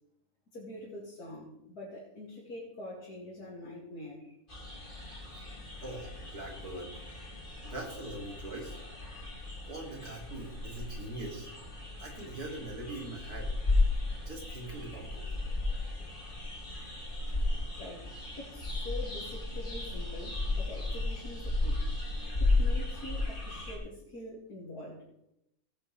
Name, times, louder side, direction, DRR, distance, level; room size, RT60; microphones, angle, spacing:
voice 1, 0.5-4.3 17.3-17.4 17.8-18.1 18.4-21.8 22.4-25.0, left 1 dB, 80° left, -6 dB, 3.1 m, -45 dB
sound 1, 4.5-23.8, left 2 dB, 30° left, 2.7 m, -34 dB
voice 2, 5.8-6.9 7.6-8.8 9.7-11.5 12.0-13.5 14.2-15.2, right 2 dB, 80° right, -2 dB, 3.3 m, -42 dB
17.5 x 8.7 x 3.4 m, 0.80 s
omnidirectional pair, 1.6 m